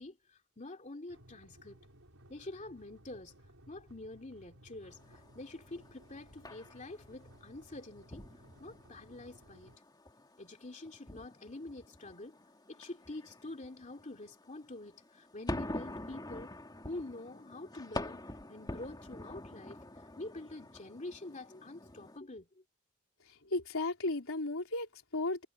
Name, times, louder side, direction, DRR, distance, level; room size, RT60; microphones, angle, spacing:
voice 1, 0.0-1.8 2.3-3.3 3.7-8.2 8.6-9.7 10.4-12.4 12.7-16.5 16.8-18.2 18.5-19.8 20.2-22.5, left 2 dB, 35° left, 2.7 m, -46 dB
sound 1, 1.1-9.8, right 1 dB, 75° right, 5.3 m, -59 dB
sound 2, 4.9-22.2, left 1 dB, 20° left, 2.6 m, -46 dB
voice 2, 23.4-25.4, left 2 dB, 70° left, 4.0 m, -34 dB
head